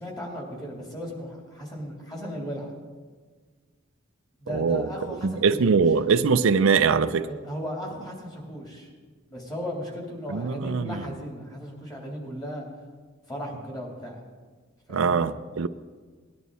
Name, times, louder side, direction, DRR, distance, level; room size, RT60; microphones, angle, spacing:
voice 1, 0.0-2.7 4.4-5.8 7.3-8.9 9.3-12.7 13.3-14.2 14.9-15.2, equal, 20° left, 3.2 m, -36 dB
voice 2, 4.5-4.9 5.2-7.3 10.3-11.0 14.9-15.7, right 5 dB, 70° right, 0.5 m, -22 dB
19.0 x 11.0 x 4.1 m
head